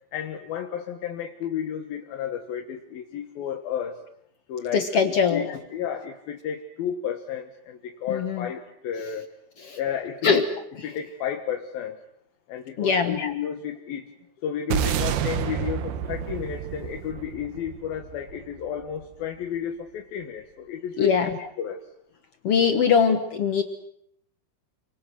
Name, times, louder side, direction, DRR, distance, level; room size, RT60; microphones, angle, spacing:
voice 1, 0.1-4.0 4.5-9.3 9.8-10.5 10.8-12.0 12.5-14.1 14.4-21.8, left 8 dB, 65° left, 3 dB, 3.1 m, -32 dB
voice 2, 4.7-5.5 8.1-8.5 9.6-9.8 10.2-10.4 12.8-13.2 21.0-21.3 22.4-23.6, left 6 dB, 85° left, 7 dB, 1.3 m, -21 dB
sound 1, 14.7-19.2, right 9 dB, 70° right, 2.9 m, -29 dB
29.0 x 25.5 x 6.3 m, 0.71 s
omnidirectional pair, 4.9 m